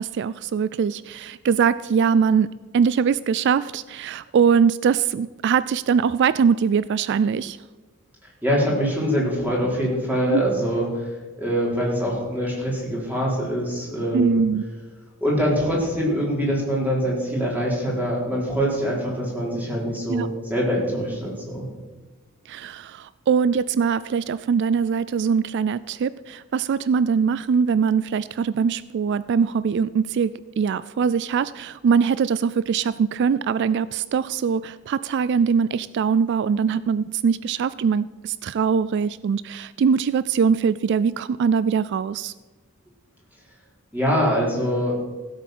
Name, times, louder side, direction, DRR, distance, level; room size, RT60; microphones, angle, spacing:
voice 1, 0.0-7.6 10.3-10.4 14.1-14.6 20.1-20.3 22.5-42.3, right 6 dB, 55° right, 17 dB, 0.3 m, -22 dB
voice 2, 8.4-14.4 15.2-21.6 43.9-44.9, equal, 10° right, -5 dB, 4.3 m, -24 dB
16.0 x 8.2 x 6.1 m, 1.3 s
head